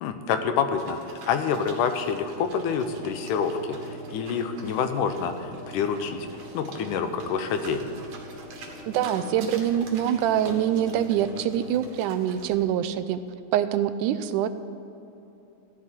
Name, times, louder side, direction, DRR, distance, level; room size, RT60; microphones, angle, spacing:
voice 1, 0.0-6.3 6.5-7.8, left 6 dB, 85° left, 8 dB, 2.4 m, -27 dB
sound 1, 0.8-12.6, right 3 dB, 65° right, 2.7 m, -47 dB
sound 2, 2.3-11.8, right 1 dB, 45° left, 3.2 m, -43 dB
voice 2, 8.9-13.2 13.5-14.5, right 10 dB, 85° right, 12 dB, 2.1 m, -25 dB
14.5 x 5.9 x 9.7 m, 2.9 s
omnidirectional pair, 3.6 m